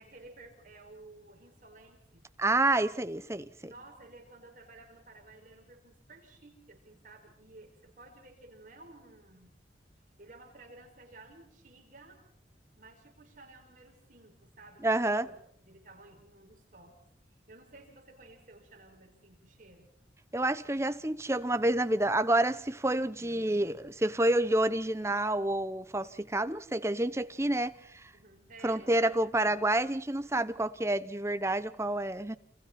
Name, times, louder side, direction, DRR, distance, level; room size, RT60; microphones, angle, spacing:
voice 1, 0.0-2.2 3.6-9.5 10.2-12.2 12.8-14.9 15.2-15.4 15.6-16.9 17.5-19.9 23.2-23.8 28.1-29.6, right 2 dB, 45° right, 5.8 m, -54 dB
voice 2, 2.4-3.7 14.8-15.3 20.3-28.1 28.6-32.4, right 1 dB, 15° right, 0.8 m, -29 dB
29.0 x 27.5 x 4.3 m
head